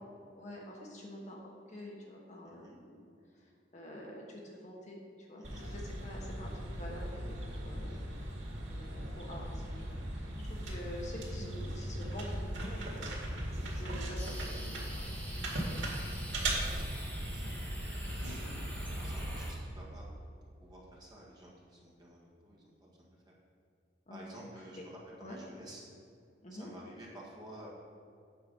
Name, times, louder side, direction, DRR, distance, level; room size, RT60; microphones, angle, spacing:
voice 1, 0.4-3.0 3.7-5.0 5.3-8.0 8.7-14.6 14.9-15.1 16.7-16.9 18.3-18.8 24.1-24.8 25.2-25.4 26.4-26.7, left 1 dB, 40° left, -2 dB, 1.3 m, -47 dB
sound 1, 5.4-19.5, right 1 dB, 90° right, 2.2 m, -38 dB
sound 2, 14.2-19.5, equal, 10° left, 1.9 m, -47 dB
voice 2, 16.5-17.0 17.3-17.6 18.7-20.0 20.6-23.3 24.1-25.9 26.5-27.7, right 1 dB, 20° right, -5 dB, 1.8 m, -53 dB
8.8 x 6.6 x 5.5 m, 2.5 s
head